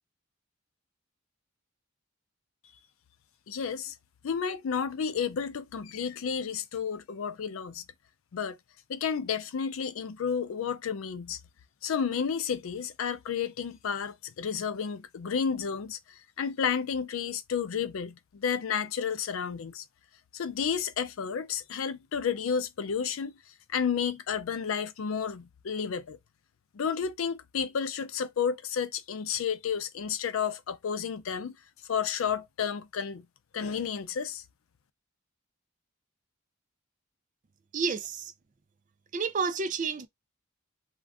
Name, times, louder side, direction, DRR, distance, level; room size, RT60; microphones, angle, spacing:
voice 1, 3.5-4.0 4.2-7.8 8.3-8.6 8.9-11.4 11.8-19.8 20.3-23.3 23.7-26.2 26.7-31.6 31.9-33.3 33.5-34.4, left 7 dB, 80° left, 0.4 m, -31 dB
voice 2, 37.7-38.3 39.1-40.1, right 5 dB, 40° right, 0.4 m, -30 dB
2.5 x 2.3 x 3.4 m
head